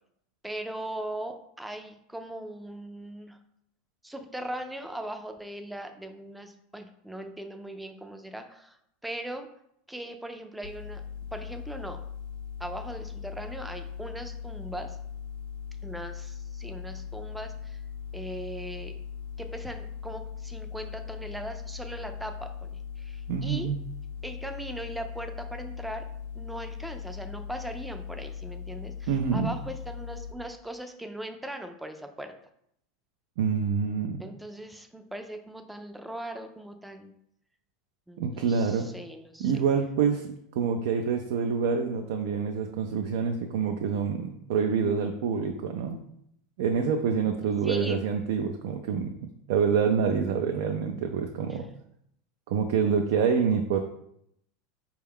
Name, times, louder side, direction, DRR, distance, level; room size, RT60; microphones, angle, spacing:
voice 1, 0.4-3.4 4.0-8.8 9.0-9.5 9.9-11.0 11.3-12.0 12.6-15.0 15.8-17.8 18.1-18.9 19.4-23.7 24.2-26.1 26.3-32.3 34.2-37.2 38.1-39.5 47.6-48.0 51.5-51.6, right 1 dB, 5° right, 6 dB, 0.4 m, -39 dB
sound 1, 10.6-30.3, left 7 dB, 65° left, 0.4 m, -39 dB
voice 2, 23.3-23.8 29.1-29.5 33.4-34.2 38.2-38.9 39.4-40.3 40.5-46.0 46.6-49.1 49.5-51.6 52.5-53.8, right 6 dB, 70° right, 4 dB, 0.4 m, -26 dB
4.4 x 2.3 x 3.5 m, 0.74 s
supercardioid pair, 115°, 0 cm